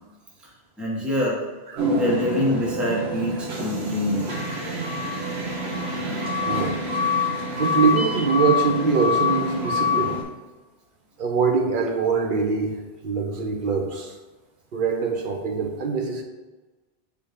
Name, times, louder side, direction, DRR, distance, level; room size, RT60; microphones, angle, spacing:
voice 1, 0.8-1.4 1.9-4.4, left 1 dB, ahead, -5 dB, 1.2 m, -25 dB
sound 1, 1.8-10.2, left 3 dB, 75° right, 1.3 m, -26 dB
voice 2, 6.5-6.8 7.5-10.2 11.2-12.8 13.0-14.1 14.7-16.2, right 5 dB, 55° right, 2 dB, 0.8 m, -23 dB
6.9 x 2.8 x 4.9 m, 1.2 s
omnidirectional pair, 1.1 m